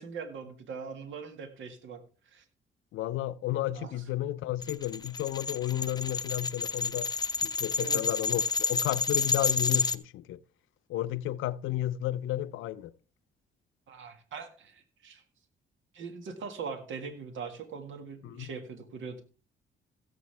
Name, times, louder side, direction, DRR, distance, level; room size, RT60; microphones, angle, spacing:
voice 1, 0.0-2.0 2.2-2.4 3.7-3.9 7.8-8.1 13.9-15.2 15.9-19.2, right 5 dB, 75° right, 1.8 m, -41 dB
voice 2, 2.9-7.1 7.4-10.4 10.9-12.9 18.2-18.5, left 14 dB, 85° left, 0.6 m, -32 dB
sound 1, 4.6-10.0, left 4 dB, 20° left, 0.7 m, -30 dB
16.5 x 7.7 x 3.3 m
cardioid pair, 90°, 20 cm